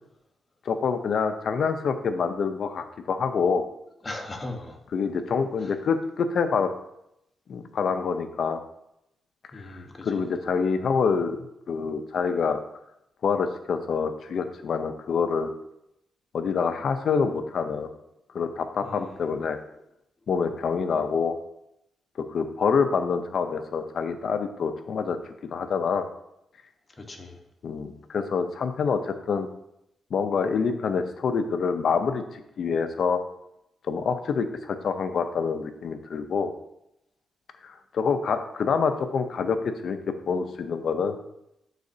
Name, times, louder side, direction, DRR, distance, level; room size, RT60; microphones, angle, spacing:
voice 1, 0.7-3.6 4.9-6.7 7.5-8.6 9.5-11.4 11.7-12.6 13.2-15.5 16.3-17.9 18.3-19.6 20.3-21.4 22.3-25.2 25.4-26.1 27.6-29.5 30.1-33.2 33.9-36.5 37.6-39.6 39.8-41.2, left 5 dB, 65° left, 8 dB, 0.6 m, -26 dB
voice 2, 4.0-4.8 5.6-5.7 9.5-10.2 18.8-19.2 27.0-27.4, left 2 dB, 30° left, 3 dB, 1.2 m, -38 dB
11.5 x 4.1 x 2.7 m, 0.81 s
cardioid pair, 85°, 0 cm